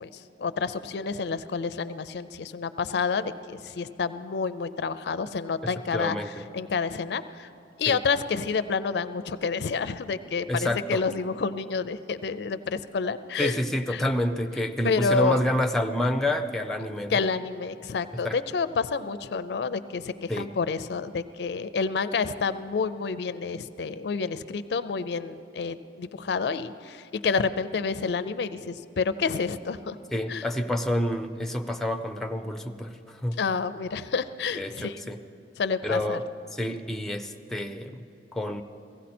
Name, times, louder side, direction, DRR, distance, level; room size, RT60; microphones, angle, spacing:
voice 1, 0.0-6.2 6.5-7.5 7.8-13.6 13.9-14.0 14.8-15.4 17.1-30.0 30.3-30.5 33.4-35.0 35.6-36.2, left 5 dB, 65° left, 13 dB, 0.4 m, -29 dB
voice 2, 5.6-6.4 7.9-8.0 10.5-11.0 13.4-17.2 18.2-18.4 20.3-20.5 30.1-33.4 34.6-35.2 35.8-38.0 38.3-38.6, left 1 dB, ahead, 6 dB, 0.4 m, -28 dB
16.0 x 16.0 x 4.3 m, 2.6 s
head